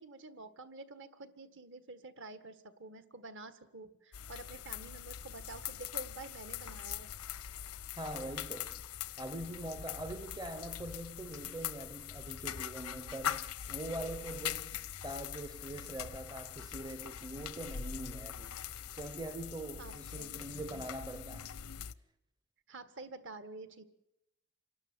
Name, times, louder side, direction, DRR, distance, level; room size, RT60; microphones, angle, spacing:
voice 1, 0.0-7.1 19.8-20.8 22.7-23.8, right 3 dB, 55° right, 1.7 m, -49 dB
sound 1, 4.1-21.9, left 9 dB, 85° left, 0.8 m, -42 dB
voice 2, 8.0-8.8 9.2-18.6 19.0-21.6, right 1 dB, 20° right, 0.7 m, -43 dB
27.0 x 12.0 x 9.5 m
head